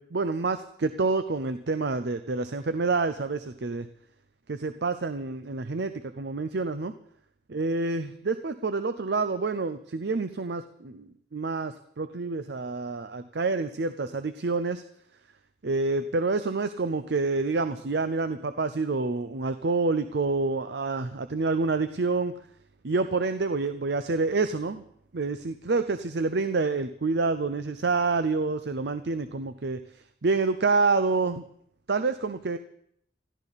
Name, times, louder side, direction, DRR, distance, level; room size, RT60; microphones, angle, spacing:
voice 1, 0.0-3.9 4.5-6.9 7.5-14.8 15.6-22.3 22.8-24.8 25.1-29.8 30.2-31.4 31.9-32.6, right 3 dB, 65° right, 11 dB, 0.6 m, -28 dB
20.5 x 14.0 x 4.1 m, 0.69 s
head